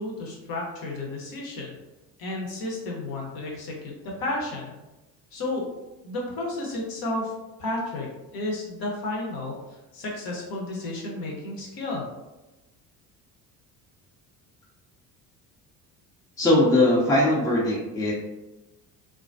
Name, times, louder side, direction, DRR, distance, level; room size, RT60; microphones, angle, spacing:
voice 1, 0.0-1.7 2.2-4.8 5.3-5.6 6.0-7.3 7.6-12.0, left 2 dB, 45° left, -2 dB, 0.8 m, -32 dB
voice 2, 16.4-18.1, left 1 dB, 5° left, -5 dB, 0.5 m, -20 dB
2.2 x 2.2 x 2.5 m, 1.0 s
hypercardioid pair, 60°, 50 cm